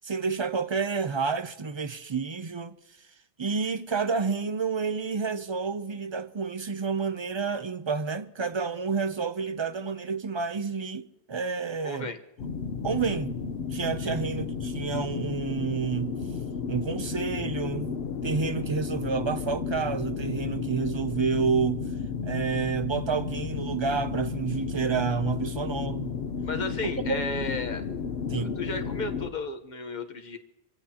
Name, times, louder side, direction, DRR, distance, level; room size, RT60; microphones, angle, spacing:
voice 1, 0.0-2.8 3.4-12.1 12.8-13.3 13.6-16.2 16.7-18.0 18.2-21.9 22.2-26.1 27.1-27.2 28.3-28.6, right 5 dB, 45° right, 0.3 m, -29 dB
voice 2, 11.8-12.2 14.0-14.2 26.4-27.8 28.3-30.4, left 2 dB, 40° left, 1.2 m, -34 dB
sound 1, 12.4-29.3, left 6 dB, 65° left, 1.1 m, -33 dB
26.0 x 15.5 x 2.9 m
omnidirectional pair, 1.2 m